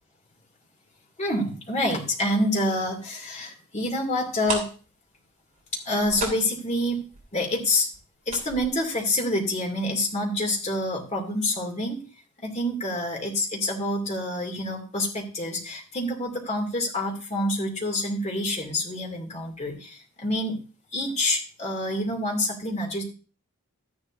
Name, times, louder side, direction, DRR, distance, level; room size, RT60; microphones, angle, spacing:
voice 1, 1.2-4.7 5.8-7.0 7.3-7.9 8.3-12.0 12.4-20.6 20.9-23.0, left 1 dB, 30° left, 1 dB, 2.4 m, -27 dB
sound 1, 4.1-4.2 4.4-10.0 10.3-10.4 10.8-11.0 11.3-11.4, right 3 dB, 30° right, 2.9 m, -36 dB
12.5 x 10.0 x 2.6 m, 0.36 s
head